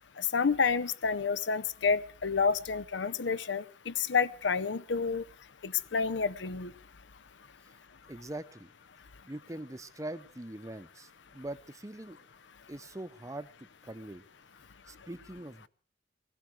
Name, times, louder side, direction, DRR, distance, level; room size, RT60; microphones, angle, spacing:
voice 1, 0.2-5.2 5.6-6.7, left 5 dB, 70° left, 18 dB, 0.7 m, -29 dB
voice 2, 8.1-8.7 9.2-12.2 12.7-13.5 13.8-14.2 14.9-15.7, right 1 dB, 15° right, 12 dB, 0.8 m, -42 dB
19.0 x 16.0 x 4.7 m, 0.40 s
head